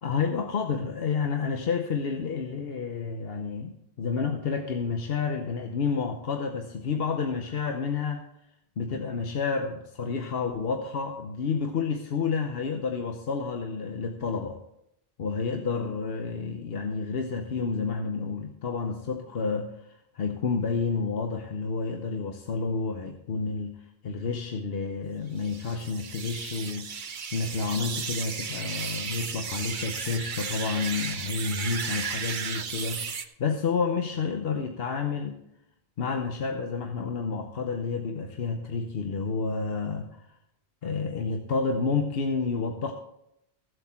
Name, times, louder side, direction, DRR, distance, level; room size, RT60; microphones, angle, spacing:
voice 1, 0.0-8.2 8.8-14.6 15.2-35.4 36.0-40.3 40.8-42.9, left 5 dB, 70° left, 4 dB, 1.1 m, -30 dB
sound 1, 25.4-33.3, right 6 dB, 55° right, 0.9 m, -34 dB
15.5 x 7.9 x 4.3 m, 0.80 s
omnidirectional pair, 1.0 m